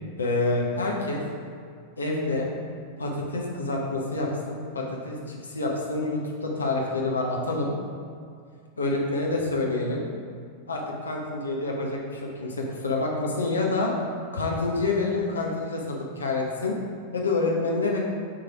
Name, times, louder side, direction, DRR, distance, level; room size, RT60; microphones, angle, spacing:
voice 1, 0.2-1.2 2.0-2.5 3.0-7.7 8.8-10.0 10.7-13.9 14.3-16.8 17.1-18.0, left 2 dB, 75° left, -1 dB, 0.8 m, -27 dB
6.1 x 3.2 x 5.8 m, 2.2 s
figure-of-eight pair, 90°, 0 cm